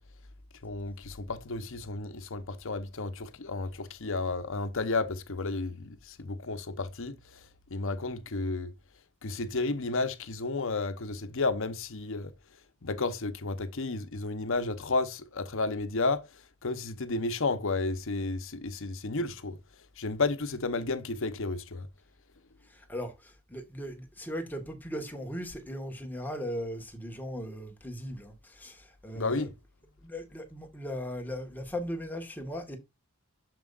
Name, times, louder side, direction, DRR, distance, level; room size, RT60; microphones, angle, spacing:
voice 1, 0.6-8.7 9.2-12.3 12.8-19.6 20.0-21.9 29.1-29.5, left 3 dB, 65° left, 1.0 m, -32 dB
voice 2, 22.6-29.5 30.0-32.8, equal, 10° left, 1.6 m, -38 dB
7.6 x 6.9 x 2.5 m
head